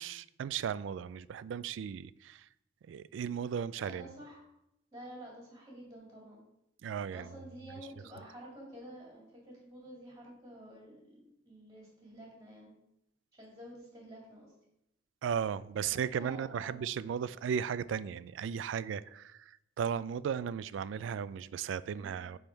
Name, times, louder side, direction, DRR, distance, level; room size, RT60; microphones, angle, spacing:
voice 1, 0.0-2.5 2.9-4.1 6.8-7.3 15.2-22.4, right 7 dB, 90° right, 0.3 m, -36 dB
voice 2, 3.8-4.4 4.9-6.4 7.1-12.7 13.4-14.5 15.8-16.9 21.9-22.3, right 1 dB, 20° right, 2.3 m, -50 dB
9.1 x 3.6 x 4.6 m
head